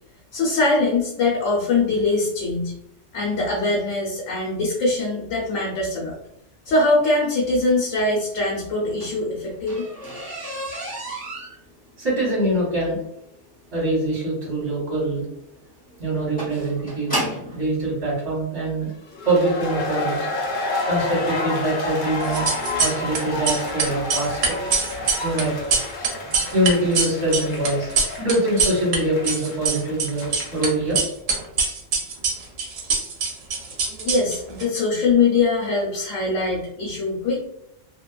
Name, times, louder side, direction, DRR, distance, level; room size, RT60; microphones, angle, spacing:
voice 1, 0.3-2.7 3.1-6.1 6.7-9.9 34.0-37.4, left 3 dB, 85° left, -3 dB, 1.0 m, -22 dB
sound 1, 8.7-17.6 18.5-18.6 19.2-19.4 19.7-19.8 20.1-20.2, right 1 dB, 5° left, 1.0 m, -33 dB
voice 2, 12.0-13.0 13.7-15.2 16.0-17.2 17.5-18.9 19.2-20.3 20.9-22.5 22.8-24.5 25.2-25.5 26.5-27.9 28.2-31.0, right 1 dB, 50° right, -6 dB, 1.4 m, -23 dB
sound 2, 19.1-30.8, left 2 dB, 55° left, 0.6 m, -30 dB
sound 3, 22.2-23.2 23.4-29.0 29.2-30.7 31.0-34.6, right 5 dB, 85° right, 1.1 m, -23 dB
2.7 x 2.3 x 2.2 m, 0.77 s
omnidirectional pair, 1.3 m